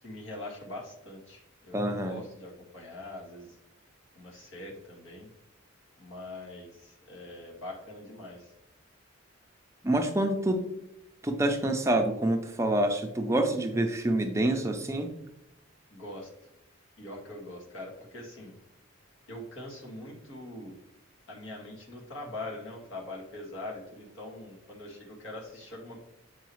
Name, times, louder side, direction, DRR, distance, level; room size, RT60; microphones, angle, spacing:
voice 1, 0.0-3.6 4.2-5.3 6.0-8.5 15.9-16.5 17.0-18.5 19.3-20.8 21.3-26.1, left 1 dB, 65° left, -2 dB, 1.9 m, -43 dB
voice 2, 1.7-2.2 9.8-10.6 11.2-15.1, right 1 dB, 15° right, 4 dB, 0.5 m, -27 dB
7.9 x 4.8 x 3.1 m, 0.83 s
head